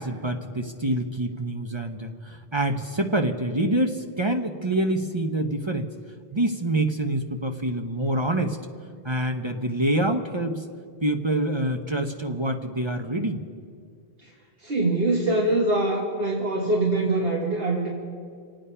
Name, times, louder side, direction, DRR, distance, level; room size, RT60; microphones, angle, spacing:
voice 1, 0.0-5.9 6.3-8.6 9.0-10.6 11.0-13.4, right 1 dB, 30° right, 4 dB, 0.8 m, -26 dB
voice 2, 14.6-17.9, right 2 dB, 70° right, -3 dB, 1.8 m, -23 dB
26.5 x 9.1 x 5.6 m, 2.2 s
omnidirectional pair, 1.0 m